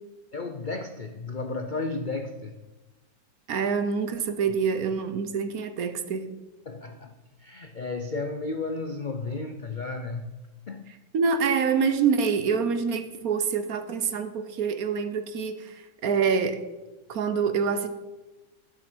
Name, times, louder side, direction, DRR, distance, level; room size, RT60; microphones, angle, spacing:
voice 1, 0.3-2.5 6.7-7.1 7.4-10.3 10.7-10.9, left 3 dB, 70° left, 7 dB, 0.4 m, -33 dB
voice 2, 3.5-6.3 11.1-16.6 17.1-17.9, right 6 dB, 60° right, 10 dB, 1.3 m, -26 dB
12.0 x 7.2 x 6.1 m, 1.1 s
omnidirectional pair, 1.8 m